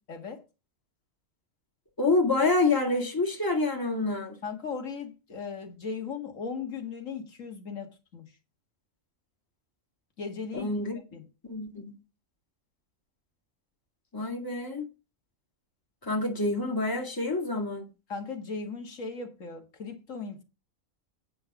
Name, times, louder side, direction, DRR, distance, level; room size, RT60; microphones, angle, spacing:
voice 1, 0.1-0.4 4.4-8.3 10.2-10.7 11.1-11.2 18.1-20.4, left 5 dB, 70° left, 2.0 m, -37 dB
voice 2, 2.0-4.4 10.5-11.0 11.4-12.0 14.1-14.9 16.0-17.8, left 3 dB, 15° left, 1.8 m, -27 dB
9.0 x 5.7 x 5.9 m
omnidirectional pair, 1.4 m